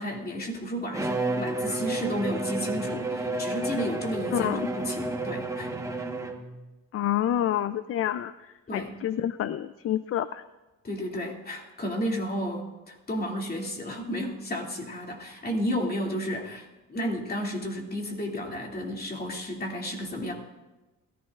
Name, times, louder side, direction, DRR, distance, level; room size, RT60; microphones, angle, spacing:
voice 1, 0.0-5.7 8.7-8.9 10.8-20.3, equal, 30° left, 0 dB, 2.6 m, -32 dB
Bowed string instrument, 0.9-6.6, right 2 dB, 10° right, 1.3 m, -31 dB
voice 2, 4.3-4.7 6.9-10.4, left 11 dB, 50° left, 14 dB, 0.5 m, -28 dB
21.0 x 14.5 x 2.5 m, 1.1 s
cardioid pair, 90°, 30 cm